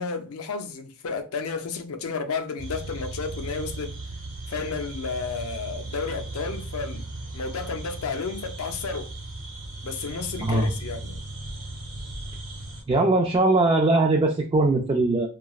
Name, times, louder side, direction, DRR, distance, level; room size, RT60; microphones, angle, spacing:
voice 1, 0.0-4.0 4.5-7.1 7.3-9.1 9.8-11.2, left 4 dB, 75° left, 0.5 m, -32 dB
sound 1, 2.6-12.8, right 2 dB, 85° right, 1.0 m, -37 dB
voice 2, 10.4-10.7 12.9-15.3, right 2 dB, 25° right, 0.3 m, -21 dB
3.0 x 2.3 x 2.3 m
head